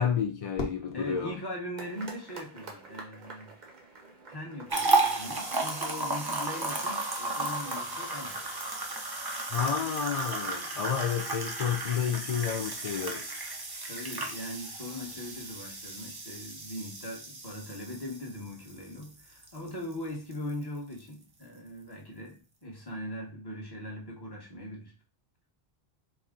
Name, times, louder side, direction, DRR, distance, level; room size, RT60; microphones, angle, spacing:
voice 1, 0.0-1.3 9.5-13.2, left 7 dB, 55° left, 0.4 m, -30 dB
Fireworks, 0.5-2.8, left 4 dB, 80° left, 1.1 m, -41 dB
voice 2, 0.9-3.5 4.3-8.4 10.7-10.9 13.9-24.9, left 1 dB, 25° left, 1.1 m, -40 dB
sound 1, 1.8-9.0, right 3 dB, 50° right, 0.9 m, -49 dB
sound 2, 4.7-19.9 20.3-20.5 21.0-21.1, right 2 dB, 30° right, 0.5 m, -33 dB
4.3 x 2.2 x 3.7 m
omnidirectional pair, 1.1 m